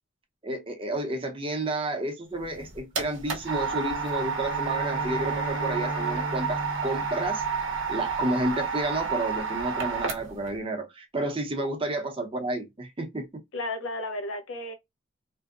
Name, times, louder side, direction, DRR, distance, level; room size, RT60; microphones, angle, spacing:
voice 1, 0.4-7.4 7.9-13.3, right 2 dB, 25° right, 0.6 m, -31 dB
sound 1, 2.4-10.5, right 5 dB, 70° right, 0.7 m, -30 dB
sound 2, 3.7-8.1, equal, 40° left, 0.5 m, -37 dB
voice 2, 13.5-14.7, left 2 dB, 90° left, 0.6 m, -33 dB
2.6 x 2.0 x 2.3 m
head